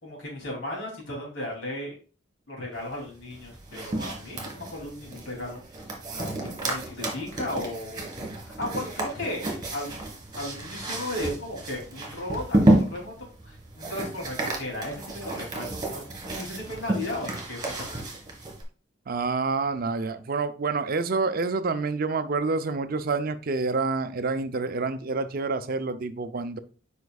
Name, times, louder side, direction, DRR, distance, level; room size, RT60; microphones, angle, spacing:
voice 1, 0.0-1.9 2.5-5.6 6.2-8.1 8.4-9.9 10.3-13.1 13.4-18.0, left 1 dB, 70° left, 2.9 m, -35 dB
sound 1, 3.3-18.6, right 1 dB, 25° right, 1.9 m, -30 dB
voice 2, 19.1-26.6, right 4 dB, 50° right, 0.5 m, -28 dB
8.1 x 5.1 x 2.3 m
head